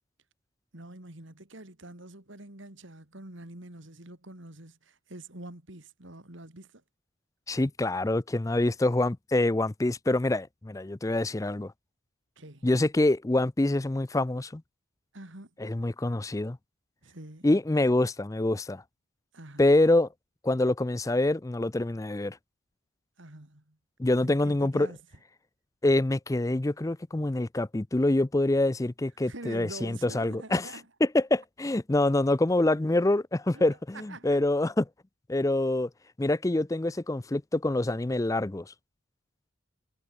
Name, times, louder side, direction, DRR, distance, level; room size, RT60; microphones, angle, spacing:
voice 1, 0.7-6.8 12.4-12.7 15.1-15.5 17.0-17.5 19.3-19.6 23.2-23.8 24.2-25.0 29.2-30.9 33.5-34.4, right 1 dB, 60° right, 2.8 m, -45 dB
voice 2, 7.5-11.7 12.6-14.6 15.6-16.6 17.4-18.8 19.6-20.1 20.4-22.4 24.0-24.9 25.8-30.7 31.0-34.8 35.3-35.9 36.2-38.7, left 2 dB, 15° left, 0.4 m, -26 dB
head